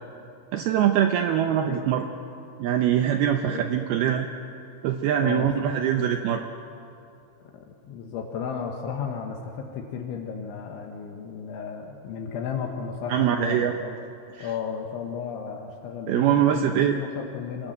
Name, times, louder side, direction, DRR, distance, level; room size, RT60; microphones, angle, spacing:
voice 1, 0.5-2.1 2.6-4.3 4.8-6.4 13.1-13.7 16.1-17.0, right 10 dB, 85° right, 5 dB, 2.2 m, -23 dB
voice 2, 5.2-5.7 7.5-14.0 14.4-17.7, left 6 dB, 75° left, 1 dB, 3.6 m, -34 dB
27.0 x 19.0 x 8.0 m, 2.6 s
omnidirectional pair, 5.7 m